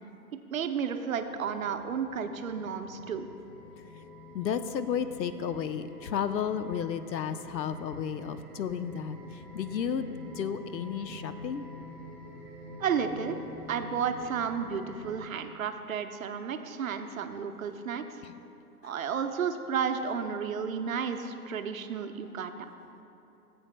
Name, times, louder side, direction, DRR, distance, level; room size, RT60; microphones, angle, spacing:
voice 1, 0.5-3.3 12.8-18.1 18.8-22.7, right 6 dB, 55° right, 7 dB, 0.7 m, -32 dB
sound 1, 0.9-15.2, left 1 dB, 5° right, 1.3 m, -47 dB
voice 2, 4.3-11.6 18.2-18.3, left 8 dB, 85° left, 11 dB, 0.7 m, -33 dB
16.5 x 7.8 x 2.2 m, 3.0 s
hypercardioid pair, 155°, 50 cm